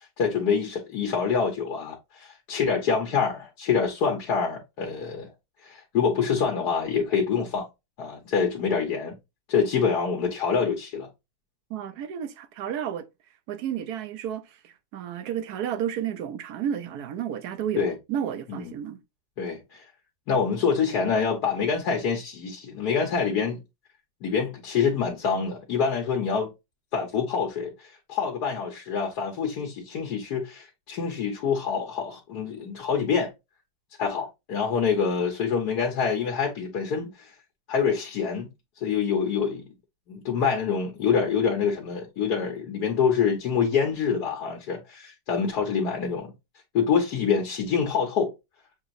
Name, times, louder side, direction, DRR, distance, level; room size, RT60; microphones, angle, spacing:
voice 1, 0.2-5.3 5.6-7.7 8.0-9.2 9.5-11.1 17.8-17.9 18.5-18.7 19.4-19.8 20.3-23.6 24.2-26.5 26.9-33.3 34.0-37.3 37.7-38.5 38.8-39.7 40.1-46.3 46.7-48.3, left 6 dB, 65° left, 1.5 m, -26 dB
voice 2, 11.7-13.1 13.5-17.8 18.1-19.0, right 9 dB, 70° right, 1.1 m, -32 dB
7.0 x 2.9 x 2.5 m
omnidirectional pair, 1.9 m